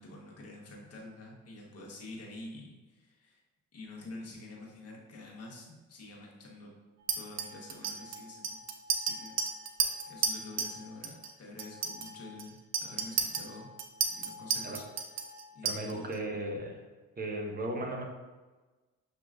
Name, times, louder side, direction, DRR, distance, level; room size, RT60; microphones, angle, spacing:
voice 1, 0.0-3.4 3.7-6.7 7.1-8.6 9.0-9.4 10.1-13.7 14.1-14.8 15.5-16.1, left 2 dB, 55° left, -2 dB, 1.4 m, -47 dB
Chink clink, 7.1-10.8 11.0-11.3 11.6-16.1, right 6 dB, 60° right, 0.6 m, -33 dB
voice 2, 15.6-16.8 17.2-18.0, right 1 dB, 30° right, 1 dB, 0.9 m, -36 dB
6.6 x 3.0 x 2.5 m, 1.2 s
cardioid pair, 90°, 30 cm